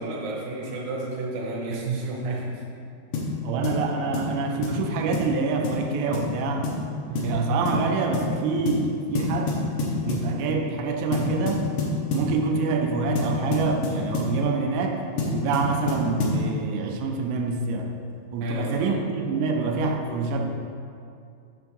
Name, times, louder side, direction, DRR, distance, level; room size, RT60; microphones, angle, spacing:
voice 1, 0.0-2.6 7.1-7.4 18.4-18.9, right 2 dB, 70° right, -2 dB, 1.8 m, -31 dB
sound 1, 3.1-3.3 3.6-3.8 4.1-4.3 4.6-4.8 5.1-5.3 5.6-5.8 6.1-6.3 6.6-6.8 7.1-7.4 7.6-7.8 8.1-8.3 8.7-8.9 9.1-10.3 11.1-12.3 13.1-14.3 15.2-16.4, left 3 dB, 80° left, 1.8 m, -27 dB
voice 2, 3.4-6.7 7.2-9.7 10.0-11.7 12.1-17.9 18.3-20.5, right 4 dB, 90° right, 2 dB, 2.8 m, -26 dB
7.1 x 3.5 x 6.1 m, 2.4 s
omnidirectional pair, 4.9 m